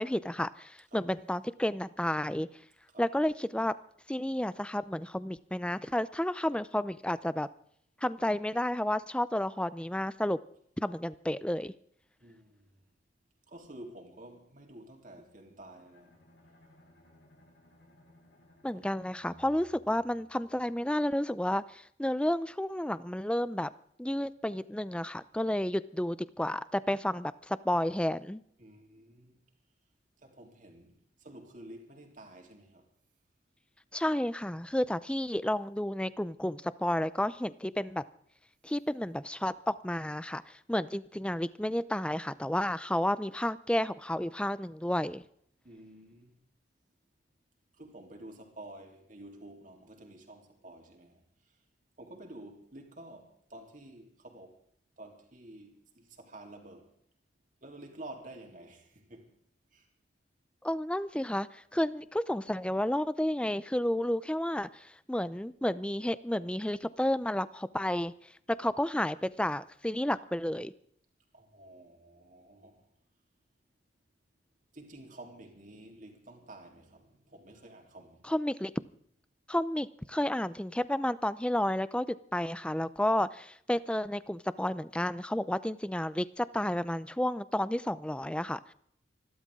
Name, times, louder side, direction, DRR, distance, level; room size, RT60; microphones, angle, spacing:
voice 1, 0.0-2.5 3.0-3.7 4.1-7.5 8.0-10.4 10.8-11.7 18.6-23.7 24.0-28.4 33.9-38.0 38.6-45.2 60.6-68.1 68.5-70.7 78.3-78.7 79.5-88.6, left 1 dB, 5° left, 0.5 m, -31 dB
voice 2, 12.2-12.7 13.5-16.3 18.7-18.9 28.6-29.4 30.2-32.9 45.6-46.4 47.8-51.2 52.0-54.6 55.0-56.9 57.6-59.3 59.7-59.8 71.3-72.9 74.7-78.3, right 1 dB, 45° right, 3.5 m, -50 dB
Bowed string instrument, 15.8-20.8, equal, 65° left, 4.3 m, -61 dB
27.0 x 12.5 x 3.7 m
head